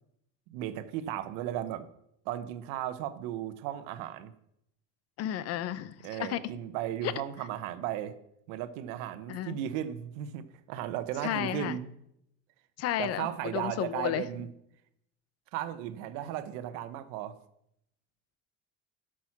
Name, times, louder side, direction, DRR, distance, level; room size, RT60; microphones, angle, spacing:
voice 1, 0.5-1.9 2.2-4.3 6.0-8.1 8.5-11.9 13.0-14.5 15.5-17.4, right 11 dB, 75° right, 12 dB, 1.0 m, -35 dB
voice 2, 5.2-6.4 7.0-7.1 9.3-9.6 11.2-11.8 12.8-14.2, left 12 dB, 50° left, 15 dB, 0.8 m, -32 dB
11.5 x 6.3 x 6.0 m, 0.78 s
cardioid pair, 130°, 32 cm